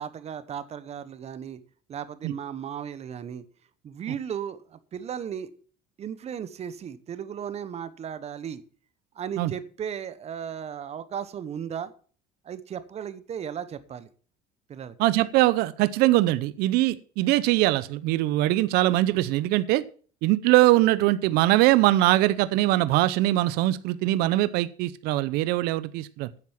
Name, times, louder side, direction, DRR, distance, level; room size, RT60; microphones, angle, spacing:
voice 1, 0.0-1.6 1.9-3.4 3.8-5.5 6.0-8.6 9.1-11.9 12.4-14.1 14.7-15.0, right 8 dB, 40° right, 14 dB, 1.1 m, -35 dB
voice 2, 15.0-19.8 20.2-26.3, right 16 dB, 75° right, 15 dB, 0.7 m, -22 dB
9.6 x 7.5 x 7.2 m, 0.42 s
cardioid pair, 110°, 17 cm